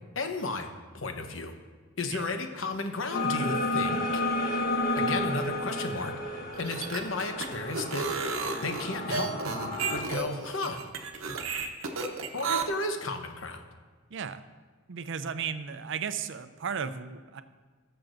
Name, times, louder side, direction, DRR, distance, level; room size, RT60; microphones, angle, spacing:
voice 1, 0.2-0.7 0.9-1.5 2.0-4.2 5.0-8.1 8.6-9.3 9.9-10.8 12.3-13.6, left 2 dB, 70° left, 5 dB, 1.0 m, -33 dB
sound 1, 3.1-10.0, left 2 dB, 50° left, 1.3 m, -31 dB
Mallet percussion, 5.0-7.9, right 2 dB, 30° left, 2.7 m, -44 dB
sound 2, 6.5-12.6, right 4 dB, 80° right, 0.9 m, -33 dB
voice 2, 14.1-14.4 14.9-17.4, right 7 dB, 65° right, 11 dB, 0.5 m, -35 dB
19.0 x 6.9 x 2.6 m, 1.4 s
head